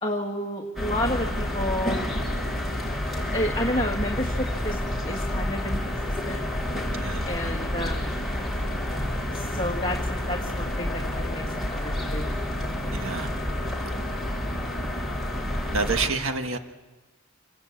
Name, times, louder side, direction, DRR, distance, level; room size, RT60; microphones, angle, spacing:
voice 1, 0.0-2.0 3.1-6.5 7.2-8.2 9.3-12.3, left 1 dB, 25° left, -1 dB, 1.8 m, -31 dB
sound 1, 0.8-16.1, left 1 dB, ahead, 6.2 m, -29 dB
voice 2, 12.9-13.3 15.7-16.6, right 4 dB, 80° right, 6 dB, 1.5 m, -28 dB
27.0 x 21.0 x 8.6 m, 1.3 s
head